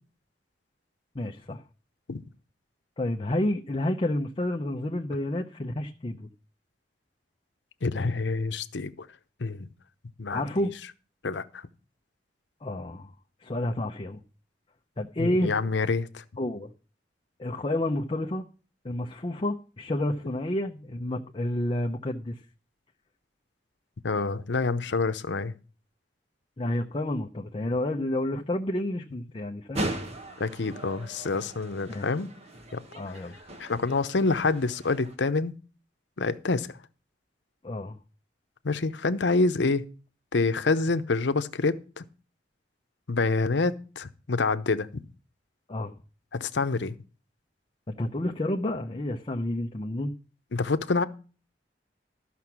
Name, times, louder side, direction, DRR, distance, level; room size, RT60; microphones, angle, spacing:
voice 1, 1.1-1.6 3.0-6.3 10.3-10.7 12.6-13.1 13.4-14.2 15.0-15.5 16.4-16.7 17.4-18.4 18.8-22.4 26.6-29.9 31.9-32.1 32.9-33.3 37.6-38.0 45.7-45.9 47.9-50.1, left 1 dB, 30° left, 0.6 m, -30 dB
voice 2, 7.8-8.9 9.4-9.7 10.2-10.7 11.2-11.6 15.2-16.2 24.0-25.5 30.4-32.3 32.7-32.8 33.6-35.5 36.2-36.7 38.6-39.8 40.3-42.0 43.1-45.0 46.3-47.0 50.5-51.0, left 3 dB, 85° left, 0.7 m, -27 dB
sound 1, 29.7-35.2, right 1 dB, 35° right, 1.3 m, -38 dB
13.0 x 5.9 x 5.9 m
head